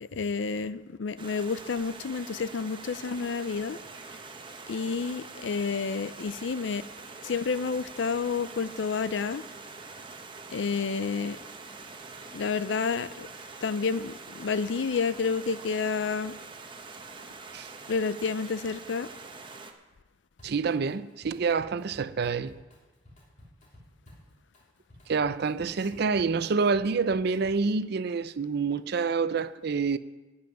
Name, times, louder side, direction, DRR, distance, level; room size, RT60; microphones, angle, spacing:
voice 1, 0.0-3.8 4.7-6.8 7.2-9.4 10.5-11.4 12.3-13.3 13.6-16.4 17.9-19.1, left 5 dB, 75° left, 0.5 m, -30 dB
Stream, 1.2-19.7, right 4 dB, 25° right, 0.9 m, -45 dB
Drum kit, 20.4-20.9 21.2-27.8, left 1 dB, 45° left, 3.2 m, -54 dB
voice 2, 20.4-22.6 25.1-30.0, right 5 dB, 60° right, 0.5 m, -27 dB
12.5 x 5.6 x 9.2 m
head